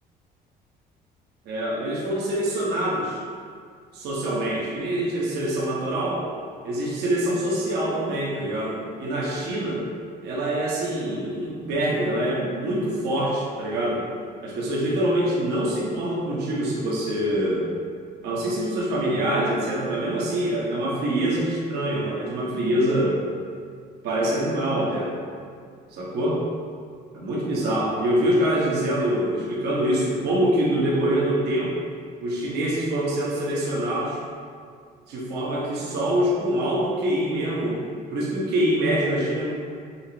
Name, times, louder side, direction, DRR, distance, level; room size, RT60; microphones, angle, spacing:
voice 1, 1.4-3.2 3.9-6.3 6.6-9.8 10.2-14.0 14.4-17.7 18.2-23.2 24.0-25.1 25.9-26.4 27.1-31.7 32.2-34.2 35.1-39.5, right 1 dB, 75° right, -6 dB, 1.1 m, -25 dB
5.6 x 3.3 x 2.8 m, 2.1 s
cardioid pair, 110°, 17 cm